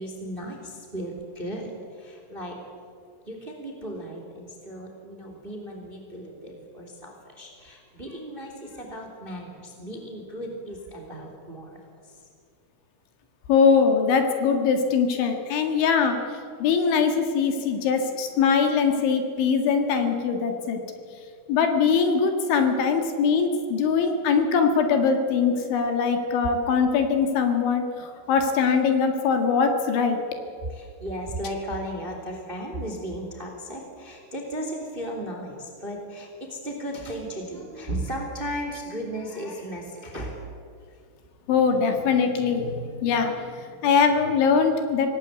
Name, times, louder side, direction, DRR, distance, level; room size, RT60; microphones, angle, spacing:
voice 1, 0.0-2.6 3.3-11.8 12.0-12.2 30.7-40.5, right 1 dB, 15° right, 2 dB, 2.5 m, -35 dB
voice 2, 13.5-20.8 21.5-30.2 41.5-45.2, left 5 dB, 70° left, 5 dB, 4.1 m, -22 dB
25.5 x 18.5 x 8.2 m, 2.3 s
omnidirectional pair, 5.8 m